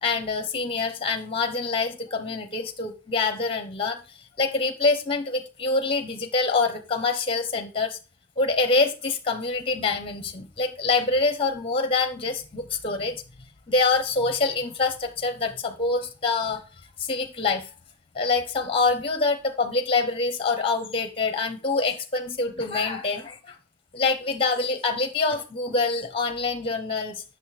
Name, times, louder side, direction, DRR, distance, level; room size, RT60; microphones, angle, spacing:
voice 1, 0.0-4.0 4.4-8.0 8.4-13.2 13.7-16.6 17.0-17.7 18.1-23.6 23.9-27.2, left 3 dB, 25° left, 7 dB, 0.8 m, -25 dB
7.6 x 6.5 x 3.2 m, 0.33 s
head